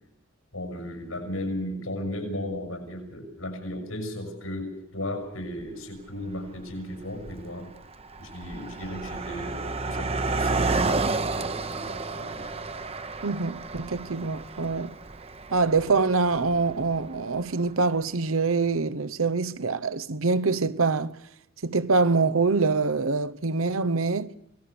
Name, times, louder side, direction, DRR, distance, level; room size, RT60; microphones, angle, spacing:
voice 1, 0.5-7.7 8.2-12.6, left 1 dB, 85° left, 7.2 m, -35 dB
Car passing by, 5.6-5.7 6.5-6.7 7.0-17.4, right 3 dB, 30° right, 0.9 m, -31 dB
voice 2, 13.2-15.0 15.5-21.2 21.6-24.3, right 4 dB, 85° right, 0.9 m, -25 dB
27.0 x 19.0 x 6.9 m
head